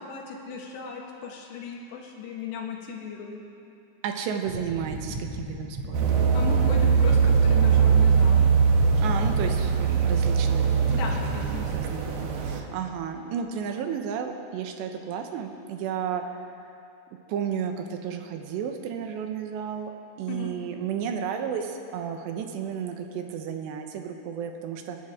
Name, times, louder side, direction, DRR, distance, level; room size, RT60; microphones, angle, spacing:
voice 1, 0.0-3.4 6.3-8.5 10.9-11.7 20.3-20.5, left 5 dB, 75° left, 0 dB, 3.7 m, -36 dB
voice 2, 4.0-6.2 9.0-16.2 17.3-19.9 20.2-25.0, right 7 dB, 85° right, 5 dB, 3.2 m, -33 dB
sound 1, 4.4-11.9, right 1 dB, 40° right, 3.0 m, -35 dB
sound 2, 5.9-12.6, right 6 dB, 65° right, 2.4 m, -21 dB
28.5 x 12.0 x 3.7 m, 2.6 s
omnidirectional pair, 5.0 m